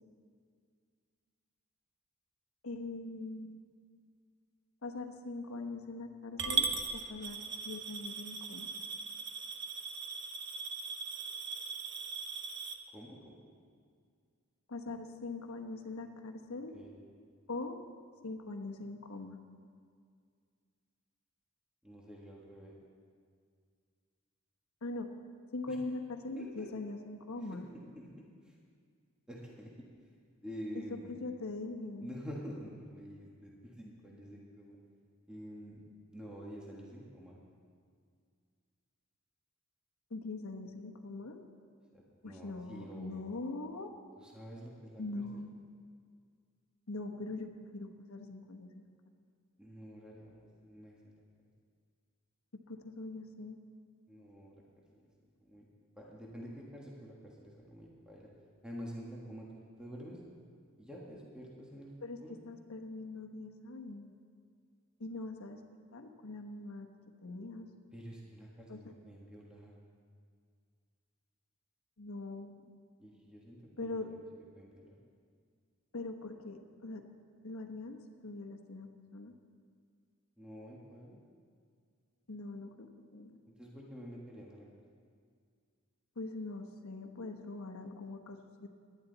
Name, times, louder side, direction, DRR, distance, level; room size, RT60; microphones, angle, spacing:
voice 1, 2.6-3.6 4.8-7.4 7.6-8.7 14.7-16.7 17.5-17.8 18.2-19.4 24.8-25.1 25.5-27.7 30.7-30.8 31.1-32.1 40.1-41.5 42.2-43.9 45.0-45.5 46.9-48.9 52.5-53.6 62.0-62.2 62.4-64.2 65.0-65.6 65.9-66.9 67.2-67.7 68.7-68.8 72.0-72.5 73.8-74.1 75.9-77.0 77.4-79.3 82.3-83.4 86.2-88.7, left 2 dB, 85° left, 4 dB, 1.1 m, -42 dB
Coin (dropping) / Glass, 6.4-12.7, right 5 dB, 55° right, 0.9 m, -38 dB
voice 2, 12.9-13.3 16.7-17.0 21.8-22.7 25.7-25.8 26.3-26.7 27.4-28.1 28.4-28.6 29.3-29.7 30.0-30.2 30.4-31.2 32.0-34.8 35.3-37.4 41.9-43.3 44.2-45.4 49.6-51.2 54.1-54.6 54.9-55.1 55.4-55.7 56.0-58.3 58.6-60.2 60.8-61.9 62.2-62.3 67.9-69.7 73.0-75.0 80.4-81.2 83.6-84.7, equal, 5° right, -4 dB, 1.6 m, -48 dB
18.0 x 11.5 x 4.0 m, 2.1 s
head